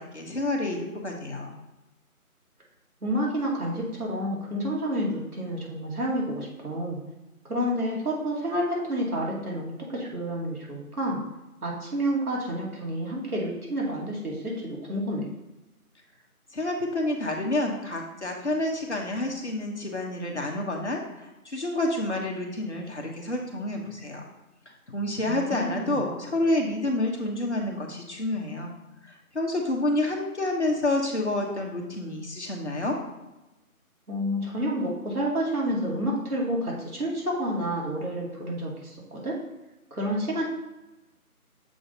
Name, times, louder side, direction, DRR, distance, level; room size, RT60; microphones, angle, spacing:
voice 1, 0.0-1.5 16.5-24.3 24.9-28.7 29.0-33.0, left 1 dB, 50° left, 1 dB, 1.1 m, -29 dB
voice 2, 3.0-7.0 7.5-11.2 11.6-15.3 25.3-26.0 34.1-39.4 39.9-40.4, equal, 75° right, -3 dB, 2.3 m, -29 dB
6.9 x 3.9 x 3.9 m, 1.0 s
figure-of-eight pair, 180°, 44 cm